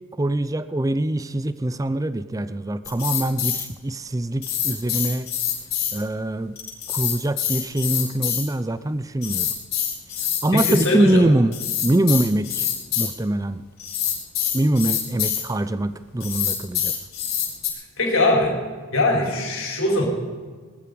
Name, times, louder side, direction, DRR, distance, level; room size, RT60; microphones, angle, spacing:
voice 1, 0.2-5.3 5.9-6.6 6.9-9.5 10.4-11.6 11.8-12.7 13.0-13.6 14.5-16.9, right 1 dB, 15° right, 14 dB, 0.4 m, -23 dB
sound 1, 2.8-3.6 4.4-6.0 6.6-8.5 9.2-10.8 11.5-13.1 13.8-15.4 16.2-17.7, left 9 dB, 45° left, 5.7 m, -25 dB
voice 2, 10.5-11.3 18.0-18.6 18.9-20.0, left 1 dB, 70° left, 0 dB, 4.6 m, -21 dB
19.5 x 13.5 x 5.3 m, 1.5 s
head